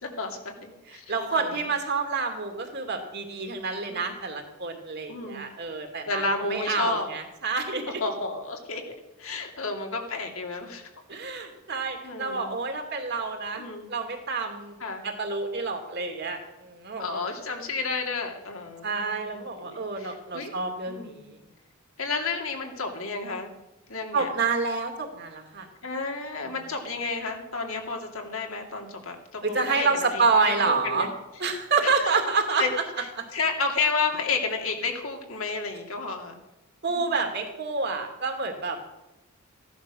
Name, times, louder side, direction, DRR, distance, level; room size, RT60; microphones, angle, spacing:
voice 1, 0.0-1.6 3.9-4.2 5.1-5.4 6.1-7.1 8.0-8.8 9.2-10.8 12.0-12.5 13.5-13.9 14.8-15.0 17.0-20.5 20.9-21.2 22.0-23.5 23.9-24.3 25.8-31.1 31.8-32.1 32.6-33.0 33.3-36.4 36.9-37.2, left 4 dB, 70° left, 2 dB, 2.5 m, -31 dB
voice 2, 0.9-6.2 6.5-8.0 11.1-14.7 15.0-17.2 18.8-21.4 24.1-25.7 29.4-31.1 31.4-32.7 33.2-33.3 36.8-38.8, right 4 dB, 50° right, 4 dB, 2.5 m, -28 dB
15.5 x 11.0 x 6.4 m, 0.96 s
head